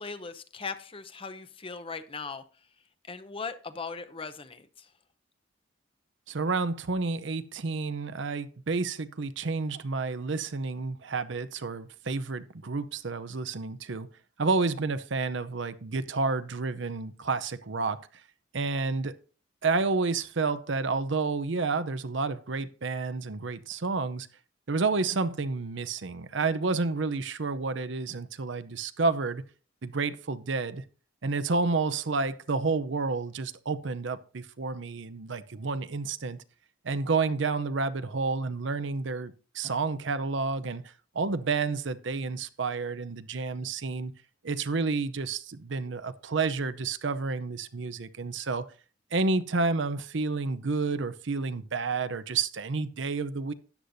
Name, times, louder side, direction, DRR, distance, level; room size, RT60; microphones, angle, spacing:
voice 1, 0.0-2.4 3.1-4.9, left 4 dB, 30° left, 0.8 m, -39 dB
voice 2, 6.3-14.1 14.4-18.0 18.5-19.1 19.6-24.3 24.7-29.4 29.8-30.8 31.2-36.4 36.8-40.8 41.1-44.1 44.4-48.6 49.1-53.5, right 4 dB, 65° right, 0.7 m, -30 dB
13.0 x 9.6 x 2.7 m
head